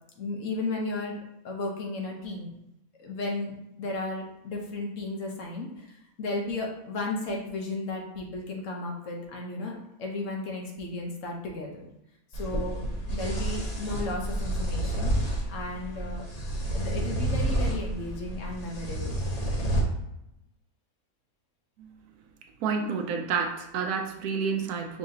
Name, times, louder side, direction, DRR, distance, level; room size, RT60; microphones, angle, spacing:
voice 1, 0.2-1.2 1.4-2.5 3.0-11.9 12.3-12.8 13.1-16.2 16.7-19.3, left 2 dB, 60° left, 0 dB, 1.1 m, -34 dB
sound 1, 12.3-19.8, right 1 dB, 35° left, 0.7 m, -30 dB
voice 2, 22.6-25.0, right 5 dB, 90° right, 4 dB, 1.2 m, -29 dB
5.6 x 2.8 x 2.7 m, 0.85 s
omnidirectional pair, 1.6 m